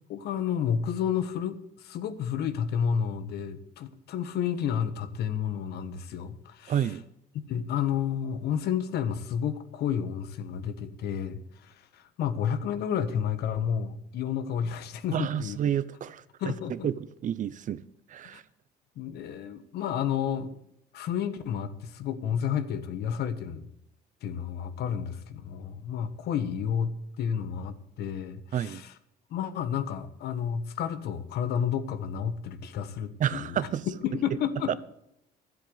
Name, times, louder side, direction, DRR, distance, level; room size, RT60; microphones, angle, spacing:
voice 1, 0.1-6.9 7.5-15.6 16.4-16.9 18.3-18.4 19.0-20.5 20.9-23.7 24.2-28.9 29.3-33.7 34.0-34.8, left 8 dB, 75° left, 1.3 m, -31 dB
voice 2, 6.7-7.0 15.1-16.2 16.7-17.8 18.1-18.4 28.5-28.8 33.2-33.9 34.7-34.8, right 9 dB, 50° right, 0.7 m, -29 dB
12.0 x 7.9 x 8.0 m
cardioid pair, 110°, 17 cm